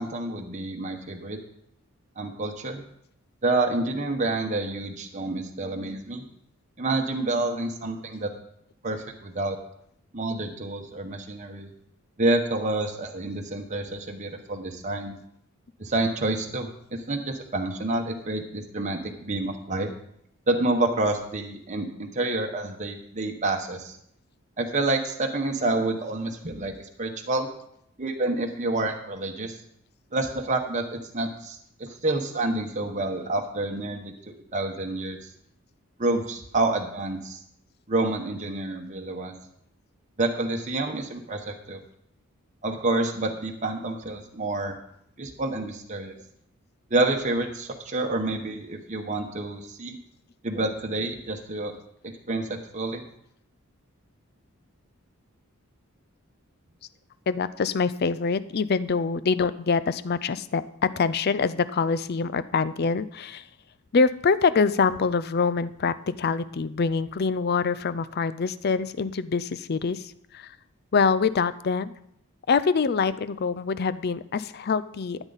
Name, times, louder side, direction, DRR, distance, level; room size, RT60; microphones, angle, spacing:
voice 1, 0.0-1.4 2.2-2.8 3.4-6.2 6.8-8.3 8.8-9.6 10.1-11.7 12.2-15.2 15.8-19.9 20.5-24.0 24.6-27.5 28.0-29.6 30.1-35.2 36.0-37.4 37.9-39.3 40.2-41.8 42.6-44.8 45.2-46.1 46.9-50.0 50.4-51.7 52.0-53.0, right 2 dB, 35° right, 2 dB, 1.1 m, -28 dB
voice 2, 57.3-63.5 63.9-70.6 70.9-71.9 72.5-75.2, left 5 dB, 45° left, 15 dB, 0.4 m, -25 dB
13.5 x 9.0 x 4.1 m, 0.73 s
head